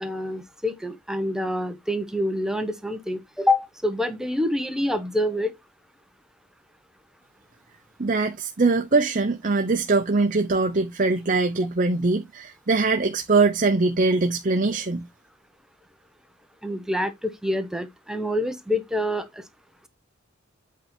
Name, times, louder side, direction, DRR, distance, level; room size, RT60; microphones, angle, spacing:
voice 1, 0.0-5.5 16.6-19.4, left 1 dB, 5° right, 1.0 m, -26 dB
voice 2, 8.0-15.1, right 3 dB, 40° right, 0.7 m, -22 dB
8.4 x 4.3 x 4.5 m
head